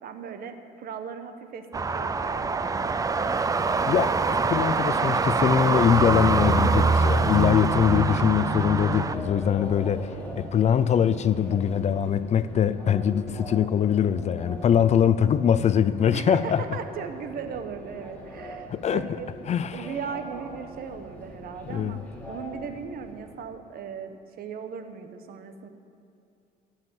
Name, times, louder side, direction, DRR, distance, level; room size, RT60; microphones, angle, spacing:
voice 1, 0.0-2.9 16.1-19.3 19.7-22.0 22.3-25.7, right 6 dB, 60° right, 1.2 m, -37 dB
sound 1, 1.7-9.1, right 4 dB, 20° right, 0.5 m, -24 dB
Subway metro underground, 4.1-23.4, left 1 dB, 10° left, 2.8 m, -41 dB
voice 2, 4.5-16.6 18.7-19.1 19.5-19.9 21.7-22.0, left 8 dB, 40° left, 0.5 m, -23 dB
14.5 x 7.3 x 9.4 m
cardioid pair, 110°, 17 cm